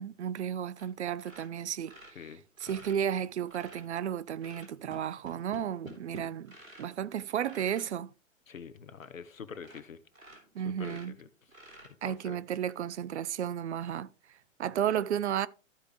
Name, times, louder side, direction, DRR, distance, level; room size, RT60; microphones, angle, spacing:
voice 1, 0.0-1.9 2.6-8.1 10.5-11.2 12.0-15.5, right 9 dB, 60° right, 0.5 m, -33 dB
sound 1, 0.8-0.9 1.2-3.9 4.4-6.9 7.4-7.9 8.5-8.6 9.0-9.1 9.5-9.9 10.1-12.3 13.8-13.9, right 1 dB, 85° right, 3.3 m, -50 dB
voice 2, 2.1-2.8 8.5-10.0 10.8-11.3 12.0-12.4, left 6 dB, 75° left, 1.0 m, -46 dB
14.0 x 4.9 x 3.0 m
figure-of-eight pair, 120°, 40 cm